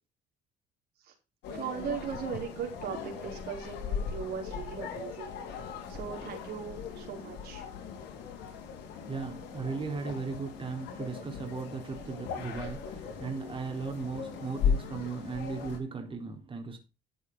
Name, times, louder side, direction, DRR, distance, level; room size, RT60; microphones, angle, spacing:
sound 1, 1.4-15.8, left 6 dB, 85° left, 4.3 m, -38 dB
voice 1, 1.5-5.3 5.6-7.6, right 7 dB, 70° right, 4.5 m, -38 dB
voice 2, 9.0-16.8, right 4 dB, 30° right, 3.9 m, -37 dB
13.0 x 8.2 x 4.1 m
cardioid pair, 110°, 17 cm